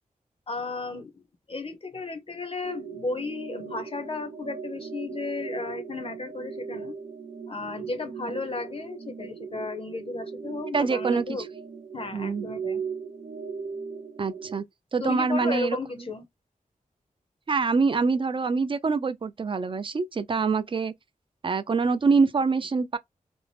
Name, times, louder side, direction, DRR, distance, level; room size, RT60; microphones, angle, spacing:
voice 1, 0.5-1.2 1.5-7.0 7.5-11.4 11.9-12.8 15.0-16.3, left 3 dB, 40° left, 0.6 m, -34 dB
sound 1, 2.6-14.5, right 6 dB, 75° right, 0.7 m, -38 dB
voice 2, 10.7-11.3 12.1-12.4 14.2-14.6 14.9-15.8 17.5-20.9 21.4-23.0, right 4 dB, 40° right, 0.4 m, -25 dB
2.6 x 2.0 x 3.2 m
wide cardioid pair, 115°, 14 cm